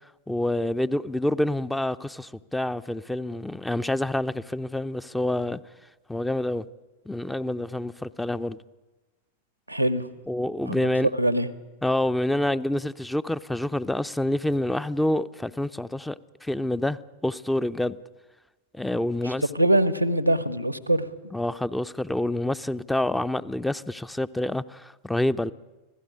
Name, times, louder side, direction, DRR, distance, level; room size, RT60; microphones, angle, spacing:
voice 1, 0.3-5.6 6.1-6.6 7.1-8.6 10.3-11.1 11.8-18.0 18.7-19.5 21.3-25.5, left 1 dB, 5° left, 0.7 m, -27 dB
voice 2, 9.7-10.1 10.7-10.8 11.2-11.5 19.5-21.1, right 1 dB, 90° right, 1.3 m, -22 dB
25.0 x 16.5 x 10.0 m
figure-of-eight pair, 90°, 0 cm